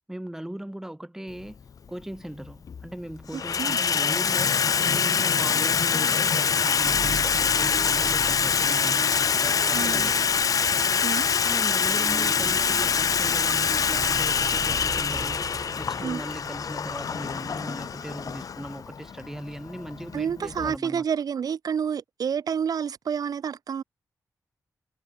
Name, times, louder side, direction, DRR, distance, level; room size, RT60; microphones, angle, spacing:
voice 1, 0.1-1.6 1.9-10.2 11.4-21.0, right 1 dB, 5° right, 3.7 m, -38 dB
Water tap faucet / Sink (filling or washing), 1.4-1.5 2.4-2.9 3.2-20.8, left 6 dB, 70° left, 1.7 m, -25 dB
voice 2, 3.3-3.8 9.7-10.1 11.0-11.3 16.0-16.2 20.1-23.8, right 7 dB, 80° right, 2.3 m, -29 dB
sound 1, 6.7-16.4, right 5 dB, 50° right, 7.5 m, -39 dB
wide cardioid pair, 120°, 6 cm